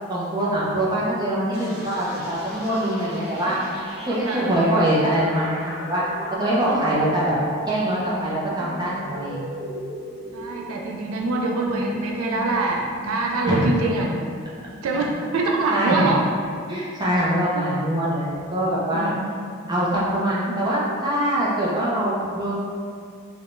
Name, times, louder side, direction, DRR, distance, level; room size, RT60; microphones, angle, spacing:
voice 1, 0.1-3.6 4.1-6.0 6.4-7.4 7.7-9.5 13.5-13.7 15.7-16.1 16.7-19.1 19.7-22.6, right 1 dB, 20° right, -7 dB, 0.4 m, -23 dB
sound 1, 1.5-15.1, equal, 50° right, 1.4 m, -37 dB
voice 2, 4.3-4.6 6.6-6.8 10.3-14.2 14.8-16.2 18.9-19.5 20.5-20.6, right 2 dB, 85° right, 0 dB, 0.4 m, -25 dB
3.4 x 2.1 x 2.5 m, 2.2 s
head